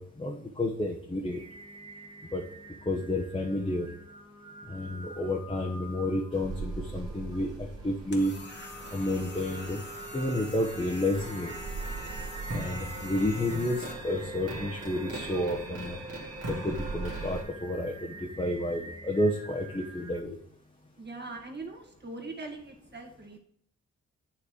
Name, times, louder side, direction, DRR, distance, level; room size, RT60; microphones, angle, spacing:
voice 1, 0.0-1.4 2.3-2.4 2.9-3.9 4.7-7.5 7.8-8.3 8.9-9.8 10.1-11.5 12.5-16.0 16.5-20.4, left 1 dB, 15° left, 0 dB, 1.0 m, -30 dB
Singing, 1.3-20.2, right 2 dB, 15° right, 1.1 m, -47 dB
sound 1, 6.3-17.4, right 2 dB, 50° right, 2.0 m, -40 dB
sound 2, 8.1-13.9, left 2 dB, 35° left, 1.3 m, -45 dB
voice 2, 21.0-23.4, right 3 dB, 35° right, 1 dB, 1.8 m, -41 dB
8.6 x 3.2 x 5.0 m, 0.65 s
supercardioid pair, 40°, 32 cm